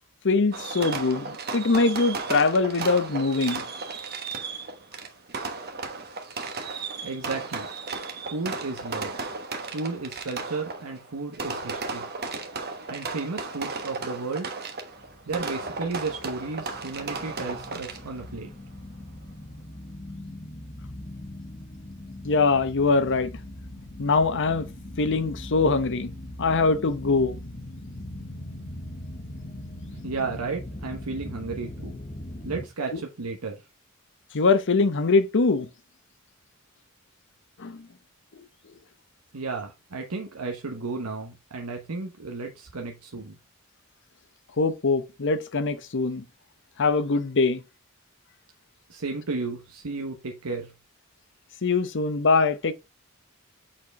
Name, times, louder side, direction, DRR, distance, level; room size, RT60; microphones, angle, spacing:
voice 1, 0.2-3.6 22.2-23.3 24.0-24.7 25.0-26.1 26.4-27.4 34.3-35.7 37.6-37.9 44.6-46.2 46.8-47.6 51.6-52.7, left 3 dB, 55° left, 0.8 m, -23 dB
Fireworks, 0.5-18.3, right 4 dB, 45° right, 1.3 m, -35 dB
voice 2, 7.0-7.7 8.3-9.1 9.7-12.1 12.9-14.5 15.3-18.5 29.9-32.0 32.4-33.6 39.3-43.4 48.9-50.7, right 3 dB, 90° right, 1.0 m, -33 dB
sound 1, 15.0-32.7, left 1 dB, 30° left, 1.0 m, -40 dB
7.5 x 4.4 x 3.4 m
head